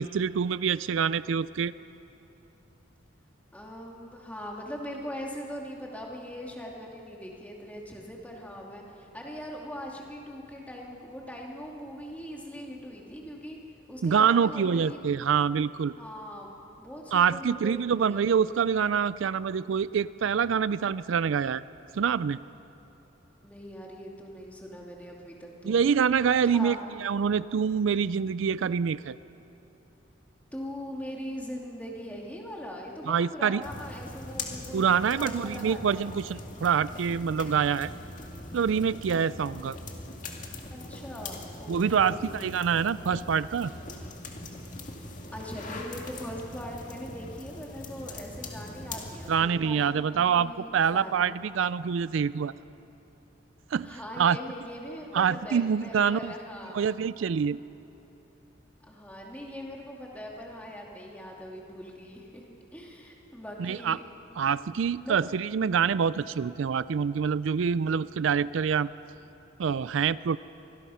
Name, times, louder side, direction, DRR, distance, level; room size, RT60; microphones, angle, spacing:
voice 1, 0.0-1.7 14.0-15.9 17.1-21.6 21.9-22.4 25.6-29.2 33.1-33.6 34.7-37.9 38.5-39.8 41.7-43.7 49.3-52.5 53.7-54.4 55.1-56.3 56.7-57.6 63.6-64.0 64.4-68.9 69.6-70.4, right 7 dB, 80° right, 17 dB, 0.4 m, -26 dB
voice 2, 3.5-13.6 13.9-15.0 16.0-18.4 23.4-25.8 26.4-26.8 30.5-36.1 39.1-39.2 40.7-42.3 45.3-51.3 53.8-56.8 58.8-62.4 62.7-64.0 64.5-64.6 65.0-65.2, equal, 10° left, -2 dB, 2.4 m, -41 dB
sound 1, 33.6-49.3, left 2 dB, 40° left, 2.0 m, -41 dB
25.0 x 19.0 x 5.7 m, 3.0 s
head